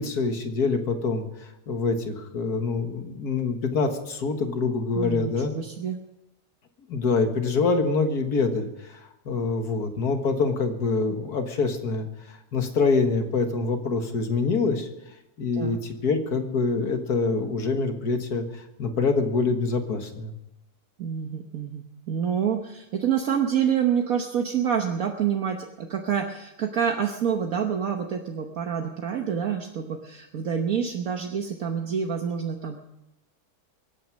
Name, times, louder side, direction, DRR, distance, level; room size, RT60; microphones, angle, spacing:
voice 1, 0.0-5.5 6.9-9.0 9.3-14.9 15.4-20.3, left 4 dB, 85° left, 6 dB, 2.1 m, -25 dB
voice 2, 4.9-6.0 15.6-15.8 21.0-32.8, right 8 dB, 65° right, 3 dB, 1.5 m, -27 dB
23.0 x 9.3 x 6.3 m, 0.91 s
omnidirectional pair, 1.6 m